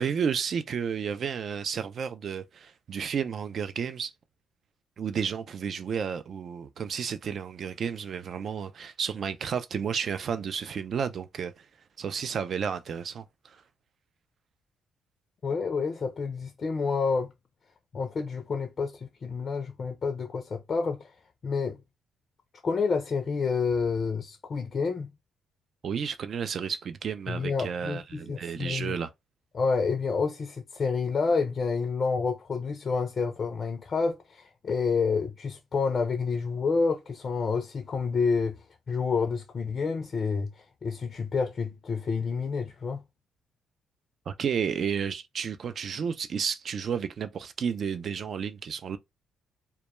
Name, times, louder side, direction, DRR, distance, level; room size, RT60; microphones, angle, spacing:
voice 1, 0.0-4.1 5.0-11.7 12.0-13.6 25.8-29.1 44.3-49.0, right 7 dB, 55° right, 0.3 m, -32 dB
voice 2, 15.4-17.3 17.9-21.1 21.4-21.8 22.6-25.1 27.3-29.0 29.5-43.0, left 5 dB, 45° left, 0.4 m, -29 dB
2.2 x 2.1 x 2.9 m
cardioid pair, 90°, 0 cm